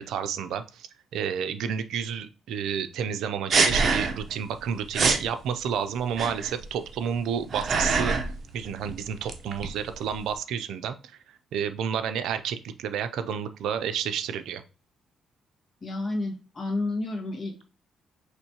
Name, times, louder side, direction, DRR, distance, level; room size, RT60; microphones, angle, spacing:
voice 1, 0.0-8.2 8.5-11.0 11.5-14.6, right 7 dB, 80° right, 10 dB, 0.5 m, -30 dB
sound 1, 3.5-4.3 4.6-4.7 4.9-5.3 6.1-6.7 7.2-8.4 8.6-10.3, right 4 dB, 45° right, 0.8 m, -25 dB
voice 2, 15.8-17.6, left 2 dB, 40° left, 2 dB, 1.5 m, -30 dB
5.9 x 3.1 x 2.8 m, 0.34 s
cardioid pair, 90°, 0 cm